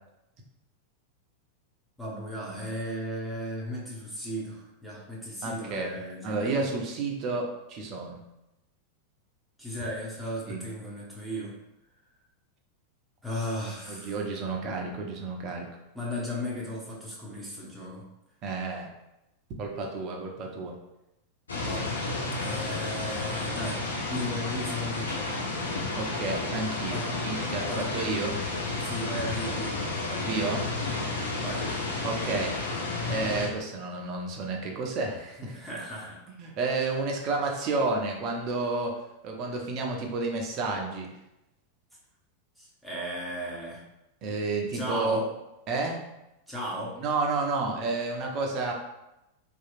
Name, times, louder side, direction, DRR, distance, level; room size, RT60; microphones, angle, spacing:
voice 1, 2.0-6.6 9.6-11.5 13.2-14.2 15.9-18.0 21.6-23.8 24.1-25.4 26.9-27.2 27.7-27.9 28.8-29.8 31.4-31.7 35.4-36.2 42.6-43.8 44.7-45.3 46.5-47.0, equal, ahead, -6 dB, 0.8 m, -36 dB
voice 2, 5.4-6.0 6.2-8.2 10.5-10.6 13.9-15.7 18.4-18.9 19.6-20.7 26.0-28.4 30.1-30.7 32.0-32.8 33.1-35.6 36.4-39.0 39.2-41.1 44.2-45.2 45.7-46.0 47.0-48.7, right 3 dB, 40° right, 1 dB, 0.5 m, -31 dB
sound 1, 21.5-33.5, left 3 dB, 70° left, 0.5 m, -31 dB
2.8 x 2.3 x 2.6 m, 0.92 s
figure-of-eight pair, 90°, 0 cm